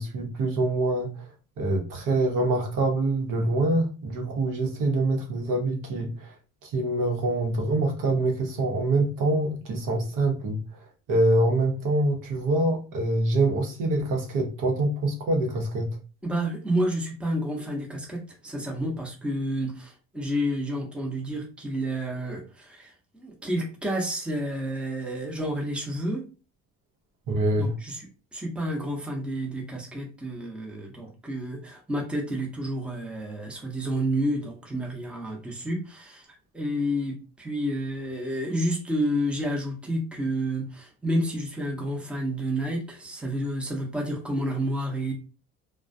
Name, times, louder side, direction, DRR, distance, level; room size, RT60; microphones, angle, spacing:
voice 1, 0.0-6.4 6.6-16.0 27.3-27.7, right 2 dB, 65° right, 0.9 m, -25 dB
voice 2, 16.2-26.2 27.5-28.0 28.3-36.3 36.5-45.1, equal, 5° right, 0.8 m, -30 dB
2.2 x 2.2 x 2.5 m
supercardioid pair, 90°, 35 cm